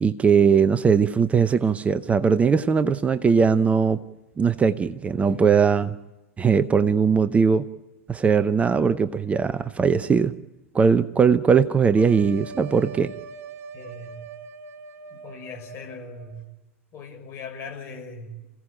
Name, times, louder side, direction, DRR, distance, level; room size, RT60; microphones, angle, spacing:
voice 1, 0.0-4.0 4.4-5.9 6.4-7.6 8.1-10.3 10.7-13.1, right 6 dB, 15° right, 0.7 m, -20 dB
sound 1, 11.9-16.4, right 5 dB, 35° right, 3.0 m, -41 dB
voice 2, 13.7-14.3 15.1-16.4 16.9-18.4, left 3 dB, 35° left, 5.9 m, -39 dB
28.0 x 16.5 x 8.8 m
figure-of-eight pair, 95°, 7 cm